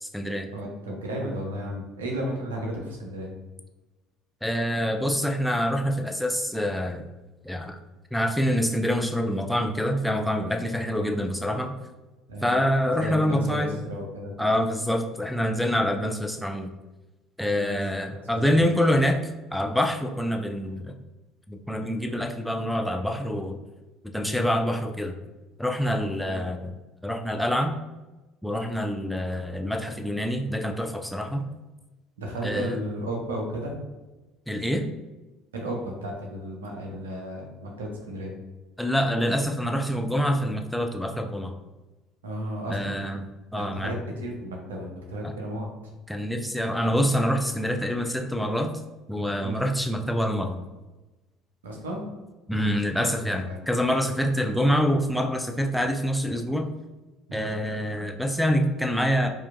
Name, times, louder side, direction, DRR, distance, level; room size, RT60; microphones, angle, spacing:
voice 1, 0.0-0.5 4.4-7.1 7.4-7.8 8.1-11.7 12.4-13.8 14.4-16.7 17.4-19.2 19.5-20.9 21.5-23.6 24.1-25.1 25.6-26.7 27.0-27.8 28.4-31.4 32.4-32.8 34.5-34.9 38.8-41.6 42.7-43.9 45.2-45.3 46.1-48.7 49.1-50.6 52.5-56.7 57.3-59.3, equal, ahead, 4 dB, 0.3 m, -26 dB
voice 2, 0.5-3.3 12.3-12.5 12.9-14.3 16.0-16.1 17.6-17.8 18.3-18.7 24.2-24.4 26.2-26.4 32.2-33.8 35.5-38.3 42.2-43.0 43.5-45.7 49.4-49.6 51.6-52.1 53.4-53.6 57.3-57.5, right 1 dB, 75° right, 0 dB, 0.6 m, -33 dB
4.4 x 2.5 x 2.4 m, 1.1 s
figure-of-eight pair, 60°, 0 cm